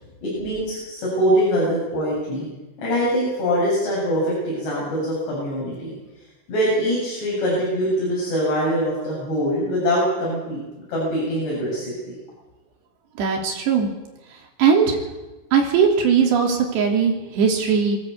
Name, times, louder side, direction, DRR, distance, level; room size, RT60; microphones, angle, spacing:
voice 1, 0.2-2.5 2.8-5.9 6.5-10.6 10.9-12.1, equal, 55° left, -6 dB, 9.8 m, -23 dB
voice 2, 13.2-13.9 14.6-15.0 15.5-18.0, right 6 dB, 60° right, 1 dB, 5.1 m, -19 dB
22.5 x 16.5 x 8.4 m, 1.1 s
omnidirectional pair, 5.7 m